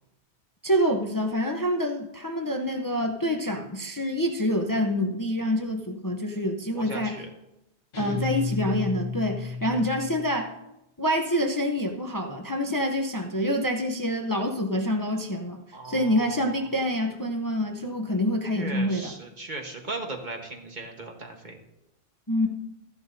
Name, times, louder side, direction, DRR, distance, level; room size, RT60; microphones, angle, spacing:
voice 1, 0.6-7.2 8.0-10.5 11.0-15.6 15.8-19.1 22.3-22.5, equal, 20° left, 2 dB, 0.7 m, -26 dB
voice 2, 6.7-7.3 15.7-16.4 18.5-21.6, right 2 dB, 45° right, 3 dB, 1.4 m, -37 dB
sound 1, 7.9-10.5, left 3 dB, 55° left, 1.6 m, -33 dB
14.0 x 11.0 x 2.7 m, 0.89 s
omnidirectional pair, 1.1 m